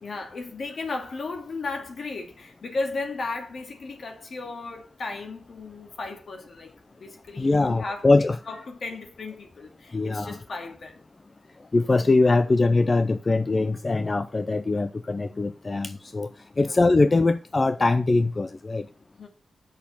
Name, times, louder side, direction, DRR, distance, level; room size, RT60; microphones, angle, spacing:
voice 1, 0.0-8.1 8.5-11.1 16.6-16.8 19.2-19.3, left 3 dB, 65° left, 2.3 m, -35 dB
voice 2, 7.4-8.4 9.9-10.4 11.7-16.3 16.6-18.9, left 3 dB, 30° left, 0.4 m, -22 dB
8.1 x 6.4 x 5.6 m
wide cardioid pair, 135°, 0 cm